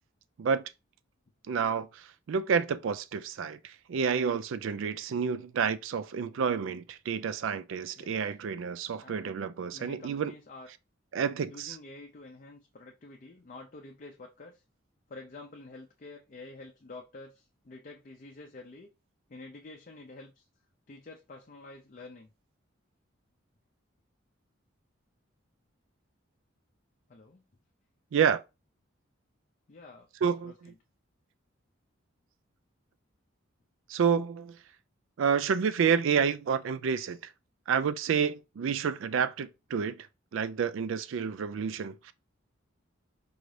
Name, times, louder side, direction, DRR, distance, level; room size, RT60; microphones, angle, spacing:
voice 1, 1.5-10.3 11.1-11.8 28.1-28.4 30.2-30.5 33.9-34.6 35.2-37.2 37.7-40.1 40.3-42.1, right 6 dB, 70° right, 0.3 m, -29 dB
voice 2, 8.0-8.3 9.0-9.4 9.7-10.7 11.5-14.6 15.1-18.9 19.3-20.5 20.9-22.3 27.1-27.5 29.7-30.8, left 2 dB, 40° left, 0.4 m, -48 dB
4.6 x 2.6 x 3.2 m
head